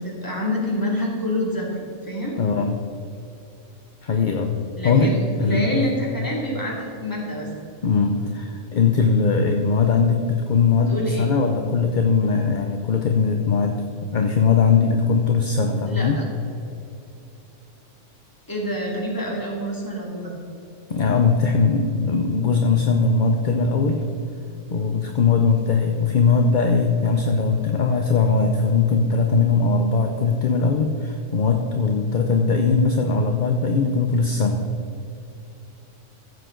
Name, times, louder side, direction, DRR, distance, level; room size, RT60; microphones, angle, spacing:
voice 1, 0.0-2.4 4.8-7.5 10.7-11.3 15.8-16.3 18.5-20.3, equal, 15° left, -3 dB, 2.4 m, -27 dB
voice 2, 2.4-2.8 4.0-4.6 4.8-5.9 7.8-16.2 20.9-24.0 24.7-34.6, left 4 dB, 45° left, 4 dB, 0.7 m, -20 dB
14.5 x 7.8 x 3.8 m, 2.7 s
omnidirectional pair, 1.3 m